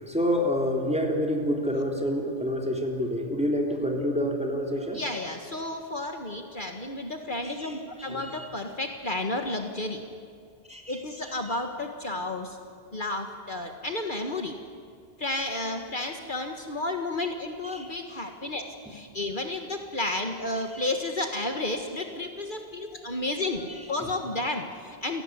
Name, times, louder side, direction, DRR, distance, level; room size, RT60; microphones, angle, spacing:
voice 1, 0.0-5.3 7.4-8.5 10.7-11.3 17.7-17.9 20.7-20.8 23.7-24.1, equal, 5° right, 1 dB, 3.5 m, -29 dB
voice 2, 4.9-10.0 10.9-12.6 12.9-14.6 15.2-25.2, left 2 dB, 50° left, 4 dB, 1.8 m, -32 dB
29.0 x 18.0 x 9.9 m, 2.3 s
omnidirectional pair, 1.1 m